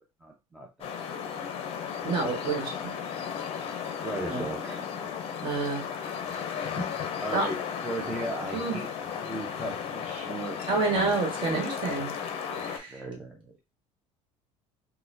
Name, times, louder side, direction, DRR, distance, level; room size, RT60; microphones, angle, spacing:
voice 1, 0.2-0.9 4.0-4.9 6.3-6.4 7.2-8.9 9.2-12.1 12.5-13.5, right 1 dB, 10° right, 0 dB, 0.5 m, -37 dB
sound 1, 0.8-12.8, left 7 dB, 45° left, 0.6 m, -35 dB
voice 2, 2.0-2.7 4.3-4.4 5.4-5.8 6.8-6.9 7.3-7.4 8.5-8.8 10.7-12.1 12.6-13.0, right 3 dB, 35° right, 0 dB, 1.5 m, -28 dB
4.1 x 2.2 x 2.6 m, 0.25 s
cardioid pair, 130°, 13 cm